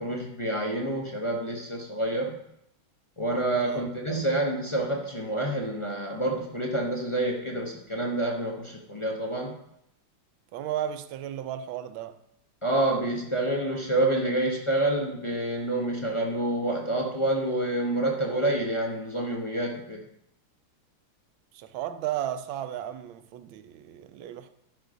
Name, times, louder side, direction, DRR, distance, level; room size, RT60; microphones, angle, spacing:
voice 1, 0.0-2.4 3.2-9.5 12.6-20.0, right 1 dB, 40° left, 0.4 m, -28 dB
voice 2, 3.6-3.9 10.5-12.2 21.5-24.5, right 11 dB, 85° right, 1.4 m, -34 dB
11.5 x 5.2 x 5.1 m
omnidirectional pair, 2.2 m